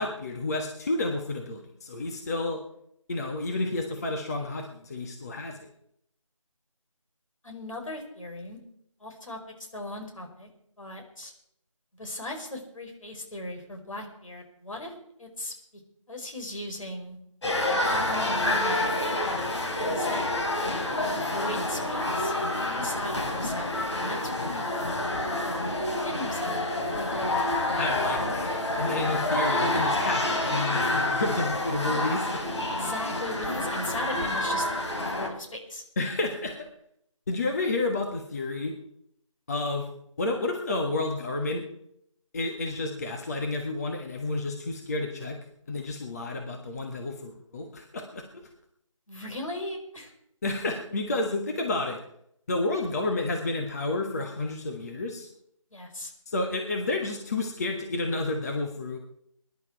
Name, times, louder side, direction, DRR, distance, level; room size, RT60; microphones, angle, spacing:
voice 1, 0.0-2.6 3.1-5.7 27.8-32.4 36.0-36.7 37.3-38.7 39.5-39.9 40.2-41.6 42.3-45.4 45.7-48.4 50.4-52.0 52.5-55.3 56.3-59.0, left 2 dB, 30° left, 2 dB, 1.4 m, -30 dB
voice 2, 7.4-8.6 9.0-9.4 9.7-10.5 10.8-11.3 11.9-14.9 15.2-15.5 16.1-17.2 17.7-19.6 19.9-20.2 21.1-22.3 22.6-27.9 28.9-29.0 32.7-34.7 35.0-35.8 49.1-50.1 55.7-56.1, left 1 dB, 70° left, 3 dB, 5.0 m, -38 dB
sound 1, 17.4-35.3, left 1 dB, 55° left, 4.1 m, -28 dB
22.5 x 11.0 x 4.6 m, 0.74 s
figure-of-eight pair, 165°, 17 cm